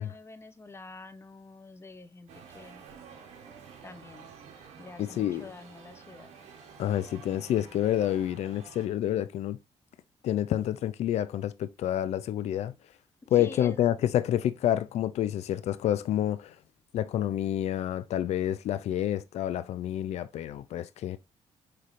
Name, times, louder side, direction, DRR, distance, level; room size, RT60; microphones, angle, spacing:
voice 1, 0.0-2.8 3.8-4.3 4.8-6.3 13.3-13.8, left 3 dB, 20° left, 0.7 m, -46 dB
sound 1, 2.3-8.9, right 6 dB, 80° right, 1.2 m, -50 dB
voice 2, 5.0-5.5 6.8-9.6 10.2-12.7 13.3-16.5 16.9-21.2, left 11 dB, 70° left, 0.4 m, -28 dB
5.6 x 3.3 x 2.5 m
cardioid pair, 90°, 12 cm